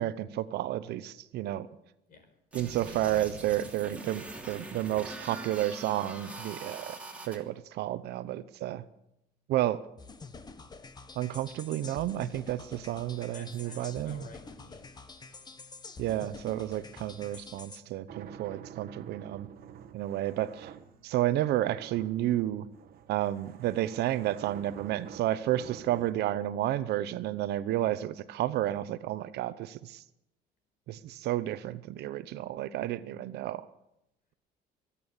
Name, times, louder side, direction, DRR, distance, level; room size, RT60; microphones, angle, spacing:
voice 1, 0.0-1.7 2.5-7.0 7.3-8.8 9.5-9.8 11.2-14.2 16.0-19.5 19.9-20.7 21.0-22.7 23.1-30.0 30.9-33.6, right 13 dB, 75° right, 15 dB, 0.8 m, -31 dB
sound 1, 2.5-7.4, right 2 dB, 10° right, 2.9 m, -43 dB
sound 2, 10.0-17.8, left 4 dB, 25° left, 1.2 m, -47 dB
voice 2, 13.3-16.0 17.5-20.3 20.9-21.0, left 3 dB, 55° left, 6 dB, 4.7 m, -56 dB
sound 3, 18.1-26.1, right 9 dB, 60° right, 1.2 m, -49 dB
23.5 x 8.5 x 7.2 m, 0.86 s
cardioid pair, 110°, 17 cm